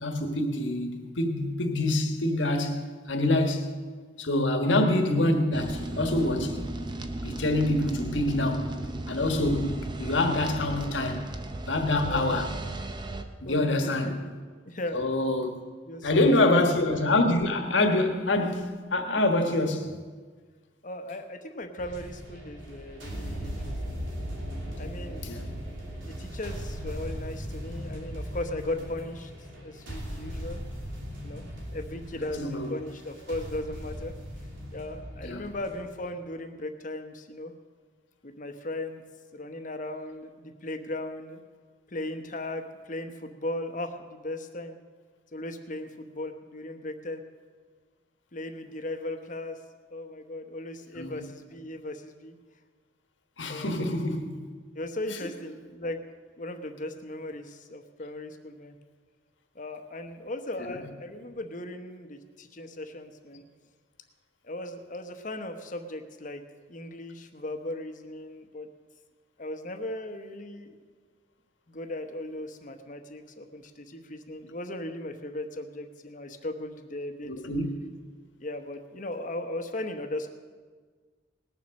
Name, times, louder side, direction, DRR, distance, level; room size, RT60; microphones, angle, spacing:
voice 1, 0.0-3.7 4.2-6.6 7.2-8.7 9.1-11.2 11.7-12.5 13.4-14.2 14.9-15.6 16.0-19.9 25.2-25.5 32.4-32.7 35.2-35.5 51.0-51.2 53.4-54.4 60.6-60.8 77.2-77.7, left 2 dB, 80° left, 1.5 m, -26 dB
sound 1, 5.5-13.2, right 2 dB, 25° right, 0.7 m, -36 dB
voice 2, 12.0-12.4 13.4-14.3 14.7-15.0 15.9-16.7 20.8-24.0 24.8-25.3 26.0-29.3 29.6-30.6 31.2-31.4 31.7-34.1 34.7-37.5 38.2-39.0 39.3-41.4 41.9-44.8 45.3-47.2 48.3-49.6 49.9-52.4 53.5-53.9 54.7-56.0 56.4-58.7 59.5-63.4 64.4-66.4 66.7-68.7 69.4-70.8 71.7-77.3 78.4-80.3, left 1 dB, 45° left, 1.0 m, -37 dB
sound 2, 21.8-36.1, equal, 90° right, 3.1 m, -38 dB
19.0 x 7.3 x 6.4 m
head